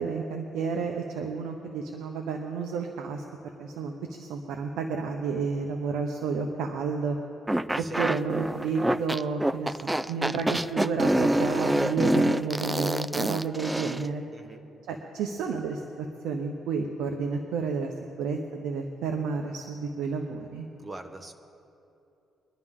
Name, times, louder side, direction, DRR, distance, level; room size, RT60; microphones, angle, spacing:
voice 1, 0.0-3.2 3.6-7.2 7.8-14.2 14.9-17.9 18.2-20.7, right 5 dB, 90° right, 3 dB, 0.9 m, -31 dB
sound 1, 7.5-14.1, right 1 dB, 10° right, 0.4 m, -26 dB
voice 2, 14.3-14.7 20.8-21.3, right 2 dB, 25° right, 6 dB, 1.2 m, -42 dB
23.0 x 11.0 x 3.7 m, 2.8 s
cardioid pair, 90°, 0 cm